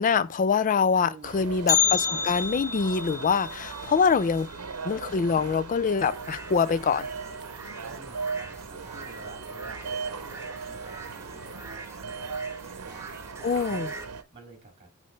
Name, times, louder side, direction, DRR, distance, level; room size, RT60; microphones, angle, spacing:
voice 1, 0.0-4.5 4.9-7.1 13.4-13.9, left 5 dB, 35° left, 0.4 m, -24 dB
voice 2, 1.0-1.5 6.6-7.2 7.8-12.4 12.6-13.4 13.7-14.9, right 3 dB, 30° right, 2.6 m, -50 dB
sound 1, 1.2-14.2, right 5 dB, 85° right, 0.8 m, -38 dB
Bell, 1.7-5.8 6.0-6.1 6.6-6.7 7.5-7.6 8.4-8.7 9.0-9.1, left 7 dB, 15° left, 0.9 m, -30 dB
sound 2, 6.0-14.1, right 3 dB, 10° right, 0.8 m, -44 dB
9.4 x 3.2 x 3.2 m
head